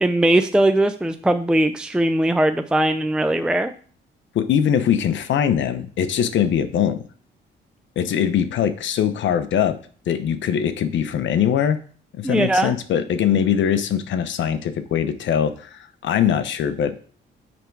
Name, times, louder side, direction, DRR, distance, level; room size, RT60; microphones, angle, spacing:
voice 1, 0.0-3.7 12.2-12.7, right 1 dB, 5° right, 9 dB, 0.5 m, -19 dB
voice 2, 4.3-7.1 8.0-9.8 10.1-11.8 12.1-17.0, left 9 dB, 70° left, 10 dB, 0.8 m, -22 dB
9.2 x 3.5 x 4.6 m, 0.43 s
cardioid pair, 90°, 20 cm